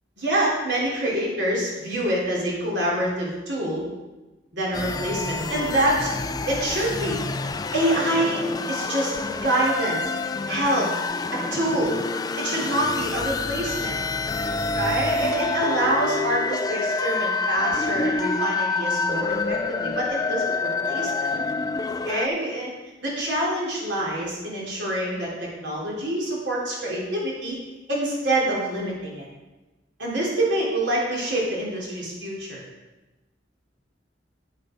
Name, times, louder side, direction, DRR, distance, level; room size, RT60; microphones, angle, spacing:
voice 1, 0.2-3.9 4.5-6.1 6.5-7.2 7.5-10.9 11.3-12.0 12.4-14.0 14.7-21.4 22.1-22.7 23.0-27.6 27.9-29.3 30.0-32.6, right 1 dB, 70° right, -4 dB, 3.4 m, -26 dB
sound 1, 4.7-22.3, left 3 dB, 20° left, 0.3 m, -27 dB
8.8 x 8.0 x 5.1 m, 1.1 s
head